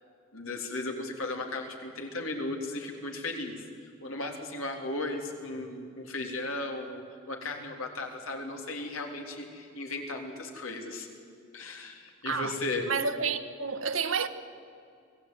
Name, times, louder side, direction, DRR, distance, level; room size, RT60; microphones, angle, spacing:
voice 1, 0.3-3.6 4.0-11.1 11.5-12.9, left 2 dB, 85° left, 3.5 m, -36 dB
voice 2, 12.9-14.3, right 5 dB, 75° right, 1.4 m, -30 dB
25.0 x 16.5 x 9.4 m
head